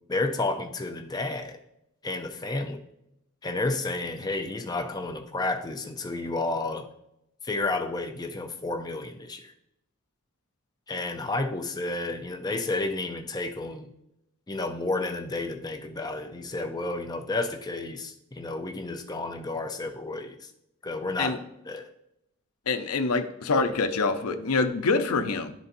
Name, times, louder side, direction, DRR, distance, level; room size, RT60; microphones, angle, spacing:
voice 1, 0.1-1.6 2.0-2.8 3.4-6.9 7.4-9.5 10.9-13.9 14.5-20.5 20.8-21.4 21.7-21.9, left 2 dB, 20° left, 5 dB, 0.5 m, -31 dB
voice 2, 22.7-25.5, left 3 dB, 90° left, 7 dB, 0.6 m, -25 dB
11.0 x 4.0 x 2.6 m, 0.81 s
head